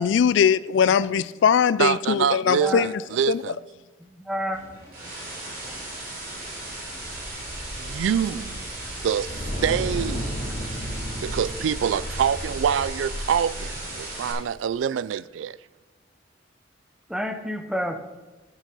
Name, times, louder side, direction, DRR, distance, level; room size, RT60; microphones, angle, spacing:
voice 1, 0.0-2.9 3.3-3.6, left 7 dB, 75° left, 0.3 m, -21 dB
voice 2, 0.9-1.2 2.6-2.8 4.0-4.6 5.6-5.8 6.5-6.6 6.9-7.1 10.4-10.5 17.1-17.9, equal, 5° right, 0.7 m, -31 dB
voice 3, 1.8-2.7 3.1-3.5 7.8-8.6 9.0-9.3 9.6-10.3 11.2-15.6, right 8 dB, 90° right, 0.3 m, -25 dB
sound 1, 4.5-14.3, right 1 dB, 50° right, 4.0 m, -37 dB
sound 2, 5.7-14.1, equal, 45° left, 2.2 m, -34 dB
12.5 x 6.2 x 5.5 m
head